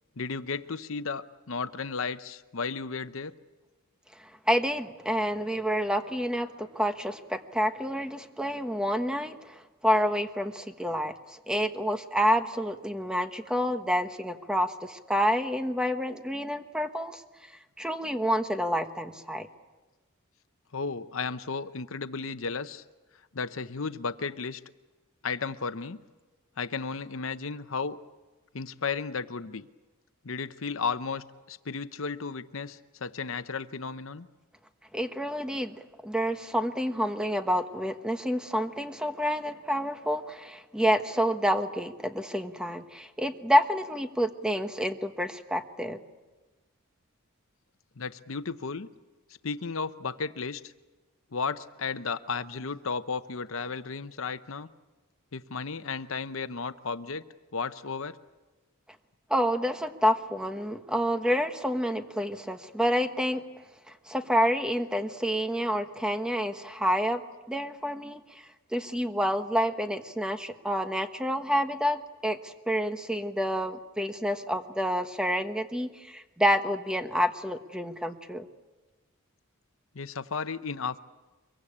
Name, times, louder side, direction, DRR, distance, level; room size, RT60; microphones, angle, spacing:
voice 1, 0.2-3.3 18.0-18.1 20.7-22.8 23.3-24.6 25.2-26.0 26.6-28.0 28.5-29.7 30.2-34.3 48.0-48.9 49.4-50.7 51.3-54.7 55.3-57.2 57.5-58.2 79.9-81.0, left 5 dB, 65° left, 12 dB, 0.8 m, -34 dB
voice 2, 4.2-17.2 17.8-19.5 34.9-46.0 59.3-63.4 63.9-67.2 67.5-78.5, equal, 5° right, 7 dB, 1.2 m, -28 dB
24.5 x 23.0 x 8.6 m, 1.2 s
head